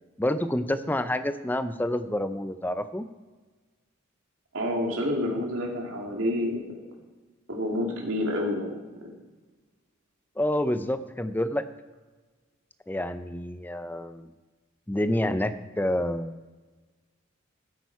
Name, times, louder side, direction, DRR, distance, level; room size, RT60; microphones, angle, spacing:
voice 1, 0.2-3.1 10.4-11.6 12.9-14.3 14.9-16.4, left 1 dB, 10° left, 11 dB, 0.4 m, -28 dB
voice 2, 4.5-6.6 7.5-8.8, left 1 dB, 75° right, 0 dB, 2.6 m, -28 dB
12.5 x 8.6 x 4.7 m, 1.3 s
head